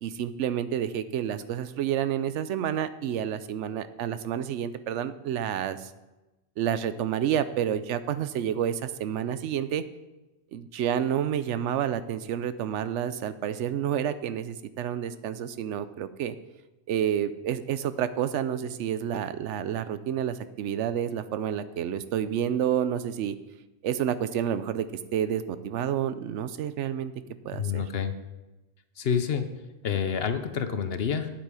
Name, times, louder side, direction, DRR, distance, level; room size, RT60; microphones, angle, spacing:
voice 1, 0.0-5.9 6.6-9.8 10.5-16.3 16.9-23.4 23.8-24.9 25.1-27.1 27.4-27.8, right 9 dB, 85° right, 13 dB, 0.9 m, -29 dB
voice 2, 27.6-28.1 29.0-29.5 29.8-31.3, left 7 dB, 60° left, 9 dB, 1.0 m, -28 dB
9.3 x 8.5 x 4.8 m, 1.1 s
omnidirectional pair, 1.2 m